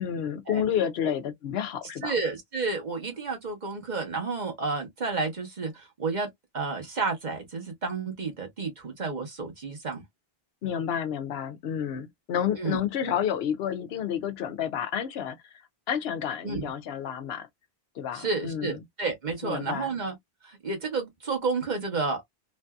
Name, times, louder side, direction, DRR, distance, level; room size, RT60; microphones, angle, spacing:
voice 1, 0.0-2.1 10.6-15.6 15.9-17.5 17.9-18.8 19.4-19.9, left 9 dB, 80° left, 0.8 m, -30 dB
voice 2, 2.0-6.3 6.5-10.0 12.6-12.8 16.4-16.7 18.1-20.1 20.4-22.3, right 4 dB, 45° right, 1.3 m, -31 dB
3.2 x 2.6 x 2.3 m
omnidirectional pair, 1.0 m